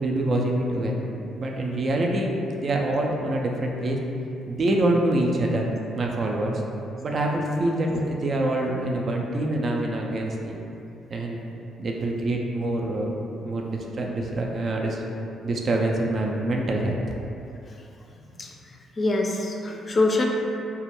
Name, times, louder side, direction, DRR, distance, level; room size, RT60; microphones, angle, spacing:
voice 1, 0.0-1.1 1.4-4.0 4.5-6.6 7.0-10.6 11.1-11.4 11.8-13.2 13.4-15.0 15.4-17.0, right 1 dB, 50° right, 0 dB, 0.3 m, -25 dB
voice 2, 19.0-20.3, left 2 dB, 40° left, 0 dB, 0.4 m, -24 dB
2.2 x 2.0 x 3.0 m, 2.7 s
hypercardioid pair, 45°, 0 cm